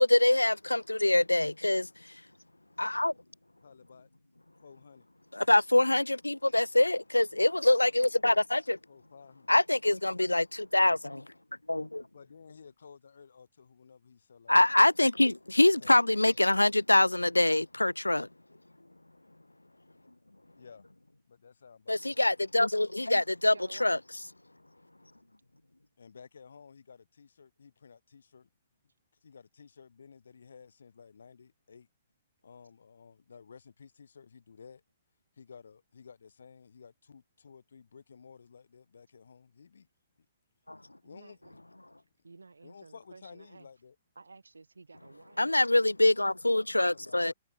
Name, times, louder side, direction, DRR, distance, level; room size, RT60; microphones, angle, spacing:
voice 1, 0.0-1.9 2.8-3.1 5.3-8.8 9.5-11.3 11.7-12.0 14.5-18.3 21.9-24.0 40.7-40.8 45.4-47.3, left 1 dB, 85° left, 0.8 m, -24 dB
voice 2, 3.6-4.1 4.6-5.1 8.9-9.5 12.1-14.6 15.5-16.4 20.6-20.9 21.3-22.2 26.0-28.5 29.2-31.9 32.4-34.8 35.4-39.9 41.0-42.0 42.6-44.0 46.7-47.3, left 6 dB, 65° left, 6.1 m, -54 dB
voice 3, 23.4-24.0 41.0-41.6 42.2-43.7 44.2-45.6, right 3 dB, 75° right, 5.6 m, -52 dB
figure-of-eight pair, 115°, 0 cm